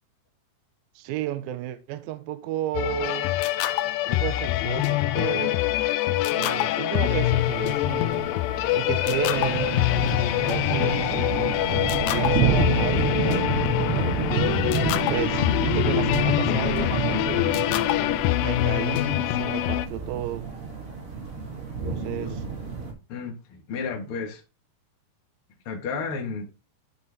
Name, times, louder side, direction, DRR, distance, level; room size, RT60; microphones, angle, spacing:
voice 1, 1.0-3.3 4.1-5.6 6.3-8.3 8.8-9.8 10.5-11.6 11.9-13.5 13.9-14.5 15.1-17.6 18.4-20.5 21.9-22.4, right 13 dB, 80° right, 2.3 m, -32 dB
sound 1, 2.7-19.9, left 15 dB, 90° left, 2.0 m, -24 dB
sound 2, 7.0-22.9, right 5 dB, 50° right, 1.9 m, -29 dB
voice 2, 22.0-22.4 23.1-24.4 25.6-26.5, left 5 dB, 55° left, 1.6 m, -32 dB
11.0 x 4.1 x 3.4 m
omnidirectional pair, 4.6 m